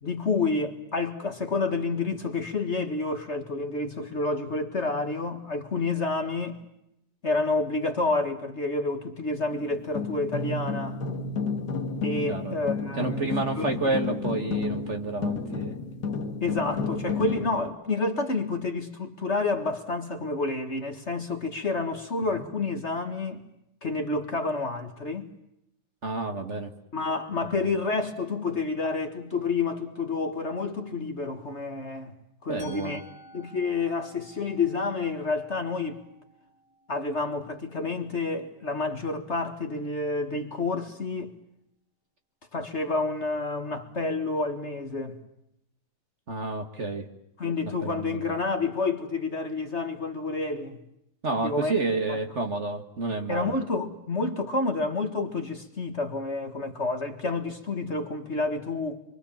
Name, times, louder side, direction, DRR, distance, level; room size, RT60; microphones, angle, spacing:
voice 1, 0.0-6.6 7.2-11.0 12.0-13.3 13.6-14.2 16.4-23.4 23.8-25.3 26.9-32.1 32.4-33.0 33.3-36.0 36.9-41.3 42.5-45.2 47.4-50.8 51.4-51.8 52.1-52.2 53.3-59.0, left 3 dB, 40° left, 1.8 m, -29 dB
sound 1, 9.5-17.7, left 4 dB, 60° left, 2.1 m, -31 dB
voice 2, 13.0-15.7 26.0-26.7 32.5-33.0 46.3-47.1 47.8-48.2 51.2-53.5, right 3 dB, 40° right, 1.9 m, -30 dB
Musical instrument, 32.6-38.5, equal, 75° right, 8.6 m, -53 dB
26.5 x 24.0 x 7.2 m
omnidirectional pair, 2.0 m